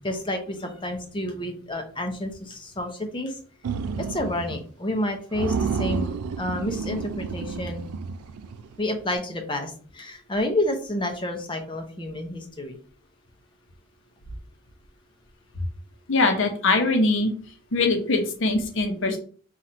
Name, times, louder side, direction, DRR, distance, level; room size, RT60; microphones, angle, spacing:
voice 1, 0.0-3.4 4.0-7.8 8.8-12.8, left 1 dB, 20° left, 4 dB, 0.6 m, -29 dB
sound 1, 3.6-4.6 4.9-5.0 5.3-8.7, right 5 dB, 85° right, 0.4 m, -30 dB
voice 2, 16.1-17.3 17.7-19.2, left 3 dB, 55° left, 4 dB, 0.8 m, -22 dB
4.0 x 2.4 x 4.2 m, 0.43 s
head